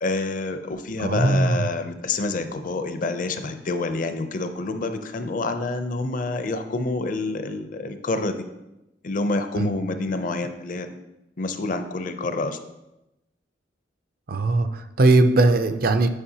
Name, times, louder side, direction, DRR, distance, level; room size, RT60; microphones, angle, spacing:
voice 1, 0.0-8.4 9.0-11.0 11.4-12.6, left 3 dB, 45° left, 8 dB, 0.5 m, -27 dB
voice 2, 1.0-1.7 9.6-9.8 14.3-16.1, right 2 dB, 50° right, 9 dB, 0.5 m, -19 dB
9.7 x 5.3 x 2.8 m, 0.93 s
head